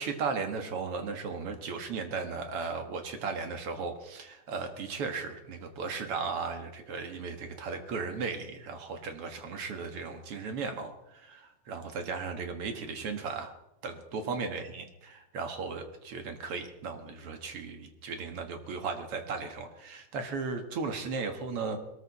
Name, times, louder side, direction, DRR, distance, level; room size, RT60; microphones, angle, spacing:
voice 1, 0.0-13.5 13.8-21.8, right 4 dB, 50° right, 6 dB, 2.1 m, -36 dB
21.0 x 14.0 x 4.1 m, 0.89 s
omnidirectional pair, 3.8 m